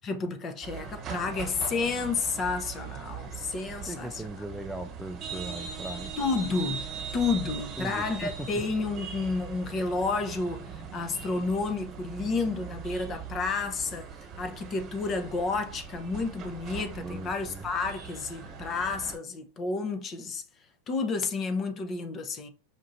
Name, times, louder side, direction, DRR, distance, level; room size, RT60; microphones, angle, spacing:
voice 1, 0.0-4.3 6.2-6.8 7.1-14.1 14.4-20.4 20.9-22.5, left 4 dB, 30° left, 0.7 m, -31 dB
sound 1, 0.6-19.2, right 7 dB, 35° right, 1.4 m, -40 dB
voice 2, 3.9-6.1 7.8-8.5 17.0-17.7, right 1 dB, 5° right, 0.3 m, -38 dB
5.1 x 2.7 x 2.6 m
hypercardioid pair, 110°, 0 cm